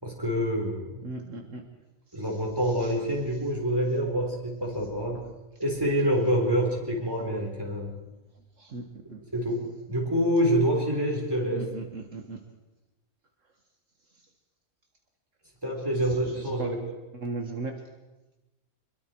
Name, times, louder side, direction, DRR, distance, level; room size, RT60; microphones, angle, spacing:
voice 1, 0.0-1.0 2.1-5.3 5.6-8.0 9.3-11.7 15.6-16.7, equal, 15° right, 0 dB, 4.4 m, -27 dB
voice 2, 1.0-1.6 2.6-3.0 8.4-9.2 11.5-12.4 14.1-14.2 15.9-17.8, right 3 dB, 65° right, 3 dB, 2.0 m, -38 dB
25.5 x 22.0 x 4.6 m, 1.0 s
omnidirectional pair, 1.4 m